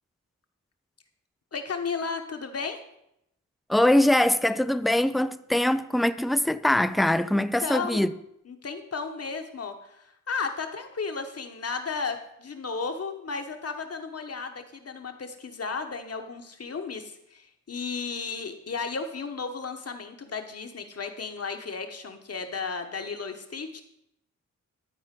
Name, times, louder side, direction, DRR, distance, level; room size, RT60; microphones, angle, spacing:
voice 1, 1.5-2.8 7.3-8.0 8.5-23.8, left 5 dB, 45° left, 1.2 m, -34 dB
voice 2, 3.7-8.1, left 1 dB, ahead, 0.3 m, -22 dB
12.0 x 4.4 x 5.9 m
cardioid pair, 85°, 33 cm